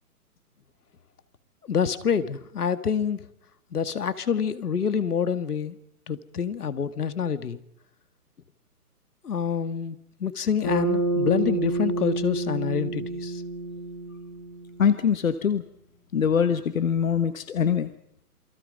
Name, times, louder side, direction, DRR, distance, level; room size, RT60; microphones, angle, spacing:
voice 1, 1.7-3.2 3.7-5.8 6.1-7.6 9.2-13.4, left 7 dB, 75° left, 12 dB, 2.1 m, -27 dB
Bass guitar, 10.6-15.1, right 2 dB, 20° left, 4.5 m, -28 dB
voice 2, 14.8-15.6 16.1-17.9, left 7 dB, 60° left, 11 dB, 1.3 m, -23 dB
28.0 x 22.5 x 5.4 m, 0.74 s
hypercardioid pair, 180°, 46 cm